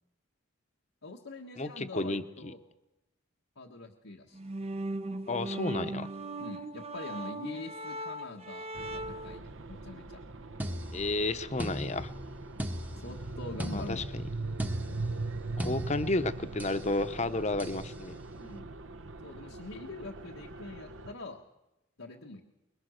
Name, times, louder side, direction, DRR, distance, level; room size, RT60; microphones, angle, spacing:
voice 1, 1.0-2.6 3.5-4.5 6.4-10.2 13.0-14.1 18.4-18.7 19.2-21.4 22.0-22.5, left 2 dB, 85° left, -1 dB, 1.6 m, -44 dB
voice 2, 1.6-2.5 5.3-6.1 10.9-12.1 13.7-14.0 15.6-18.1, left 2 dB, 35° left, 10 dB, 1.0 m, -32 dB
sound 1, 4.3-9.4, right 1 dB, 30° right, 0.7 m, -38 dB
sound 2, 8.7-21.1, right 3 dB, 70° right, 1.1 m, -41 dB
sound 3, 10.6-16.9 17.6-17.9, equal, 10° right, 1.0 m, -39 dB
25.0 x 22.0 x 6.5 m, 0.97 s
head